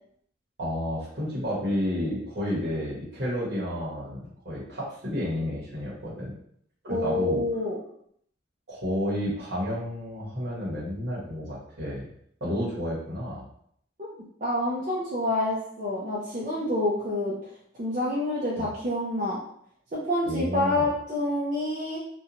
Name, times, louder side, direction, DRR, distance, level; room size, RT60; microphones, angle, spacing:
voice 1, 0.6-6.3 6.8-7.4 8.7-12.1 12.4-13.5 18.6-18.7 20.3-20.9, equal, 65° right, -7 dB, 0.9 m, -31 dB
voice 2, 6.8-7.8 14.4-17.4 17.8-19.4 19.9-22.0, left 1 dB, 40° right, -7 dB, 0.5 m, -27 dB
2.6 x 2.2 x 2.8 m, 0.68 s
head